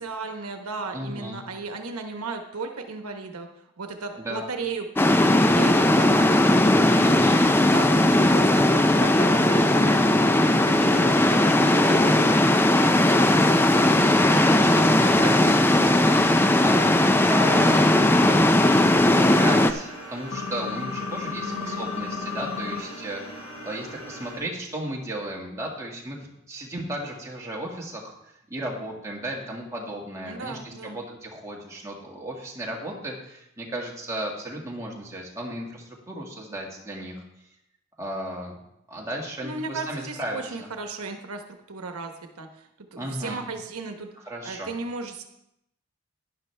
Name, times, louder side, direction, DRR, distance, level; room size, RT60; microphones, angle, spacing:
voice 1, 0.0-3.5 3.8-4.9 5.2-6.3 7.6-10.3 10.6-12.4 21.4-21.9 30.2-31.0 39.4-42.5 42.9-44.1 44.4-45.2, right 4 dB, 80° right, 5 dB, 1.0 m, -35 dB
voice 2, 0.9-1.4 4.2-4.5 7.0-7.4 10.9-11.9 13.0-13.4 13.7-16.8 17.3-17.9 18.3-18.4 19.0-26.2 26.5-37.2 38.0-38.6 38.9-40.7 43.0-43.4 44.2-44.7, right 1 dB, 15° right, -3 dB, 1.9 m, -34 dB
sound 1, 5.0-19.7, left 1 dB, 10° left, 0.4 m, -18 dB
sound 2, 17.5-24.4, equal, 55° left, 5.0 m, -41 dB
sound 3, 20.3-22.8, left 5 dB, 85° left, 1.0 m, -32 dB
12.0 x 10.5 x 3.3 m, 0.82 s
head